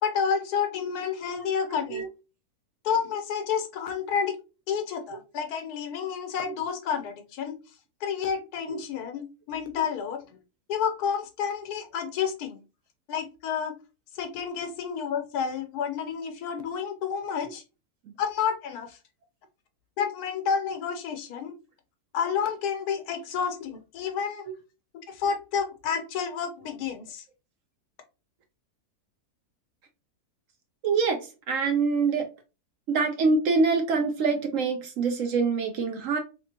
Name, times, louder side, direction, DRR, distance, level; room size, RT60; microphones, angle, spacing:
voice 1, 0.0-2.0 2.8-4.4 4.7-7.6 8.0-10.4 10.7-12.6 13.1-13.7 14.1-17.6 18.2-19.0 20.0-21.5 22.1-24.4 25.1-27.2, left 7 dB, 80° left, 1.2 m, -30 dB
voice 2, 30.8-31.2 31.5-32.2 32.9-36.2, right 4 dB, 65° right, 0.9 m, -25 dB
3.2 x 2.9 x 2.7 m
omnidirectional pair, 1.6 m